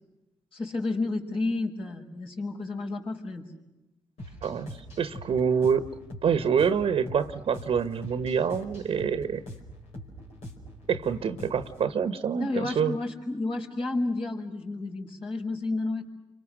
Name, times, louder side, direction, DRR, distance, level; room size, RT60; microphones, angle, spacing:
voice 1, 0.5-3.4 12.4-16.1, left 2 dB, 55° left, -1 dB, 5.5 m, -31 dB
sound 1, 4.2-11.9, equal, 80° left, 5.0 m, -43 dB
voice 2, 4.4-5.9 6.2-9.4 10.9-13.0, right 7 dB, 65° right, 12 dB, 1.2 m, -26 dB
29.5 x 25.0 x 6.5 m, 1.0 s
hypercardioid pair, 40°, 11 cm